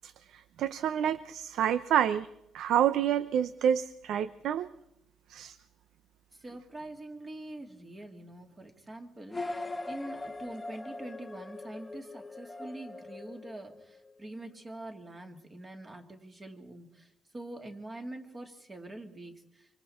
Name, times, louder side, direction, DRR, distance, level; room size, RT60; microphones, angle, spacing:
voice 1, 0.0-2.3 2.5-4.7 5.3-5.6, right 9 dB, 80° right, 14 dB, 0.7 m, -28 dB
voice 2, 6.4-17.1 17.3-19.7, right 1 dB, 20° right, 4 dB, 2.5 m, -45 dB
sound 1, 9.3-14.1, left 2 dB, 15° left, 1.0 m, -41 dB
25.5 x 25.0 x 4.4 m, 0.78 s
cardioid pair, 155°, 0 cm